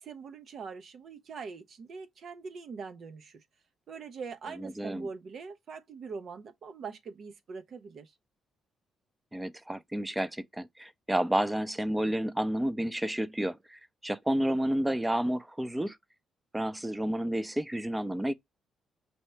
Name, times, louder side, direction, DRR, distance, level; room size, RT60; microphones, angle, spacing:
voice 1, 0.0-3.4 3.9-8.1, right 5 dB, 55° right, 0.6 m, -43 dB
voice 2, 4.6-5.1 9.3-16.0 16.5-18.3, right 1 dB, 10° right, 0.4 m, -30 dB
5.3 x 2.8 x 3.2 m
cardioid pair, 90°, 0 cm